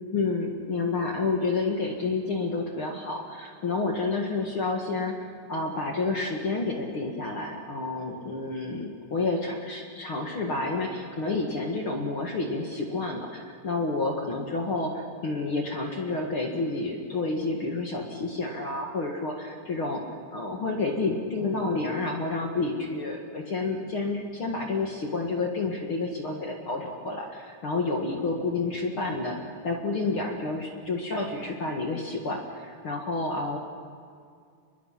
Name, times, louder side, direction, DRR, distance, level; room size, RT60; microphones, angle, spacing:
voice 1, 0.1-20.0 20.3-33.6, left 3 dB, 45° left, 1 dB, 1.9 m, -29 dB
30.0 x 22.0 x 5.8 m, 2.2 s
omnidirectional pair, 4.7 m